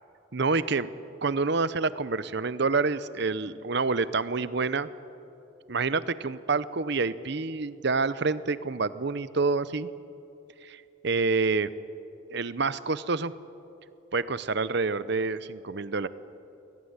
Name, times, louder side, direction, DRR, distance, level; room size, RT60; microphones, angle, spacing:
voice 1, 0.3-0.9 1.2-4.9 5.7-9.9 10.6-11.7 12.3-13.3 14.1-16.1, right 4 dB, 55° right, 15 dB, 0.7 m, -27 dB
23.0 x 18.0 x 9.6 m, 2.8 s
head